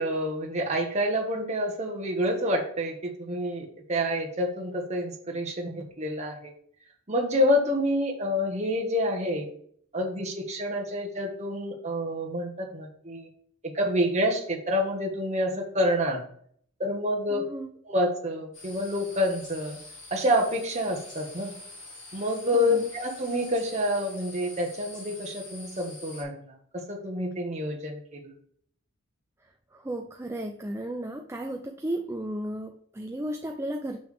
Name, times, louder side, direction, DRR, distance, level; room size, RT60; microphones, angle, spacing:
voice 1, 0.0-6.5 7.1-9.5 9.9-13.3 13.7-16.2 16.8-17.4 17.9-19.8 20.1-21.5 22.1-26.5 26.9-28.3, equal, 30° right, 0 dB, 1.4 m, -28 dB
voice 2, 17.3-17.7 22.5-22.9 29.7-34.0, right 1 dB, 10° right, 3 dB, 0.4 m, -34 dB
sound 1, 18.5-26.2, left 2 dB, 55° left, 3.1 m, -45 dB
6.9 x 6.0 x 3.3 m, 0.62 s
head